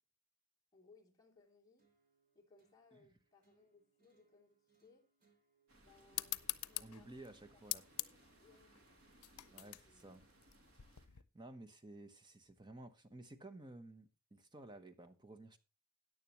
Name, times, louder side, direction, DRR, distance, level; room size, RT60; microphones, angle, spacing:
voice 1, 0.7-1.8 2.3-5.0 5.8-9.0 9.4-10.0, left 3 dB, 15° left, 3.0 m, -68 dB
sound 1, 1.8-9.8, right 4 dB, 40° right, 3.1 m, -77 dB
sound 2, 5.7-11.1, right 1 dB, 70° right, 2.5 m, -67 dB
sound 3, 6.1-11.2, left 17 dB, 85° left, 0.6 m, -45 dB
voice 2, 6.8-7.8 9.5-10.2 11.1-15.6, right 2 dB, 20° right, 0.9 m, -54 dB
14.0 x 9.9 x 3.0 m
head